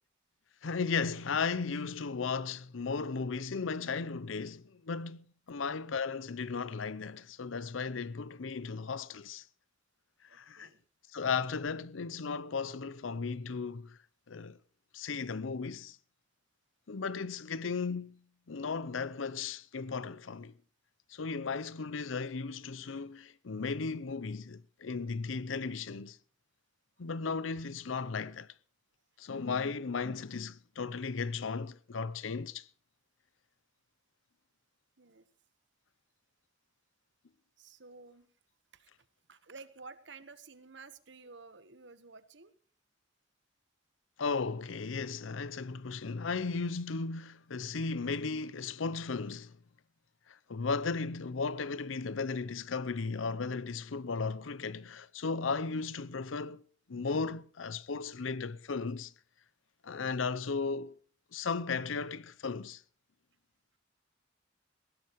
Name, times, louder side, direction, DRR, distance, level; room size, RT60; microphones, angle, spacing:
voice 1, 0.6-9.4 10.2-10.7 11.1-14.0 14.3-14.6 14.9-16.0 16.9-18.2 18.5-20.5 21.1-26.2 27.0-28.5 29.2-32.7 44.2-49.5 50.3-56.6 56.9-59.1 59.8-61.0 61.3-62.8, left 4 dB, 85° left, 0.7 m, -35 dB
voice 2, 10.3-10.8 35.0-35.3 37.6-38.3 38.7-38.9 39.3-42.5, right 4 dB, 65° right, 1.3 m, -52 dB
19.5 x 16.5 x 3.1 m
head